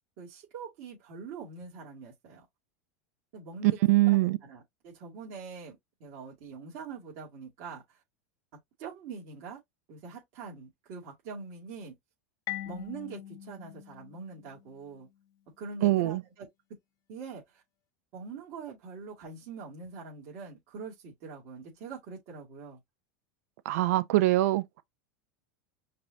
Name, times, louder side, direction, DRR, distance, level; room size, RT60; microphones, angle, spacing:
voice 1, 0.2-2.4 3.3-3.8 4.0-8.0 8.8-9.6 9.9-11.9 12.7-15.1 15.6-16.5 17.1-17.6 18.1-22.8, right 5 dB, 60° right, 2.4 m, -44 dB
voice 2, 3.9-4.4 15.8-16.2 23.7-24.8, right 17 dB, 75° right, 0.6 m, -23 dB
Marimba xylophone, 12.5-15.1, left 14 dB, 50° left, 1.0 m, -42 dB
5.2 x 2.7 x 2.8 m
supercardioid pair, 120°, 8 cm